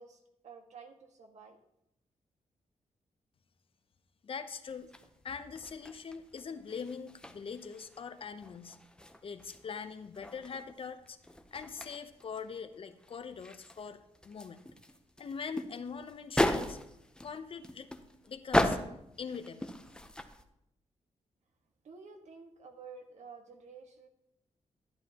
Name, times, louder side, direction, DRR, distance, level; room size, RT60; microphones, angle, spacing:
voice 1, 0.0-1.6 21.8-24.1, right 5 dB, 75° right, 4 dB, 1.5 m, -51 dB
voice 2, 4.2-4.9 5.2-8.8 9.2-11.2 11.5-14.6 15.2-16.8 17.2-17.9 18.3-18.9 19.2-19.7, left 6 dB, 50° left, 10 dB, 0.7 m, -42 dB
sound 1, 4.7-20.4, left 1 dB, 5° left, 0.7 m, -37 dB
11.5 x 10.5 x 2.9 m, 0.82 s
cardioid pair, 100°, 12 cm